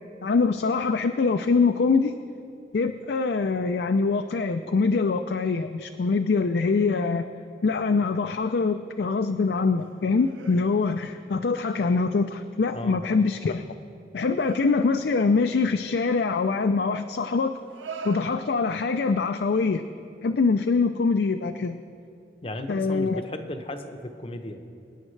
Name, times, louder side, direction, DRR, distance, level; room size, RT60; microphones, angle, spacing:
voice 1, 0.2-2.1 2.7-7.3 7.6-13.6 14.1-17.5 18.0-19.8 20.2-21.8 22.7-23.2, left 4 dB, 60° left, 8 dB, 0.4 m, -24 dB
sound 1, 8.1-8.6 9.0-11.3 11.6-12.3 12.8-13.1 14.3-15.3 16.5-16.7 17.5-19.0 20.4-20.5, right 5 dB, 85° right, 0.6 m, -45 dB
voice 2, 22.4-24.6, left 1 dB, 30° left, 7 dB, 0.7 m, -35 dB
24.5 x 10.0 x 3.2 m, 2.5 s
head